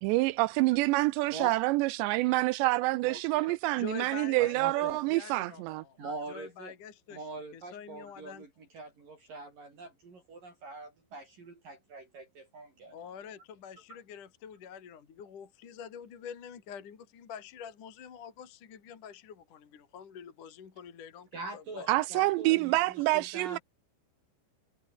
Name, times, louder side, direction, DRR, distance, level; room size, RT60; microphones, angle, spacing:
voice 1, 0.0-5.8 21.9-23.6, right 20 dB, 85° right, 2.5 m, -27 dB
voice 2, 3.0-3.6 4.4-5.0 6.0-6.7 7.1-13.1 13.9-14.0 21.3-23.6, right 3 dB, 45° right, 6.8 m, -44 dB
voice 3, 3.8-6.0 6.3-7.2 7.5-8.5 12.9-22.6, left 8 dB, 45° left, 4.0 m, -46 dB
omnidirectional pair, 5.7 m